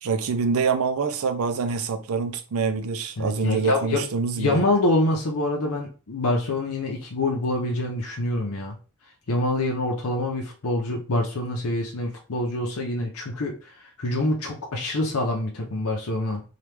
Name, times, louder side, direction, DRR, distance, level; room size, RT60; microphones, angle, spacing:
voice 1, 0.0-4.6, right 5 dB, 70° right, 0.5 m, -25 dB
voice 2, 3.2-4.0 4.4-8.8 9.3-16.4, left 2 dB, 70° left, 0.7 m, -26 dB
3.0 x 2.4 x 3.3 m
head